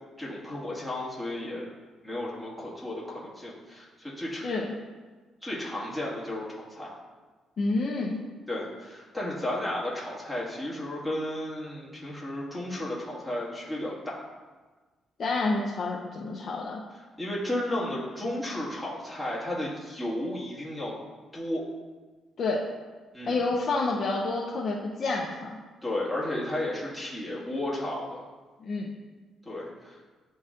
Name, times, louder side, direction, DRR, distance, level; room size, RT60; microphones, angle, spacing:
voice 1, 0.2-1.7 2.0-4.5 5.4-6.9 8.5-14.2 17.2-20.9 21.3-21.6 23.1-23.4 25.8-28.2 29.5-30.0, left 1 dB, ahead, -7 dB, 2.0 m, -33 dB
voice 2, 4.4-4.8 7.6-8.2 15.2-16.8 22.4-22.6 23.3-25.6 28.6-28.9, left 3 dB, 50° left, -3 dB, 0.7 m, -29 dB
10.5 x 4.0 x 2.5 m, 1.3 s
cardioid pair, 90°, 0 cm